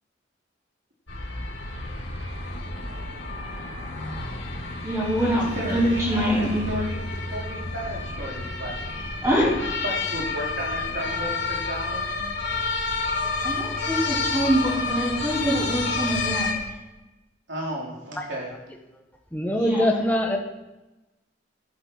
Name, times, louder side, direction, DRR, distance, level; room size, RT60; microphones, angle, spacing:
sound 1, 1.1-16.5, left 3 dB, 75° left, 2.5 m, -30 dB
voice 1, 4.8-6.7 9.2-9.5 13.4-16.5 19.6-19.9, equal, 15° right, -8 dB, 4.9 m, -24 dB
voice 2, 5.5-8.8 9.4-9.5 9.8-12.3 17.5-18.5, right 1 dB, 70° right, -3 dB, 3.3 m, -33 dB
voice 3, 19.3-20.4, left 1 dB, 10° left, 1 dB, 1.3 m, -23 dB
12.0 x 11.5 x 4.6 m, 1.0 s
head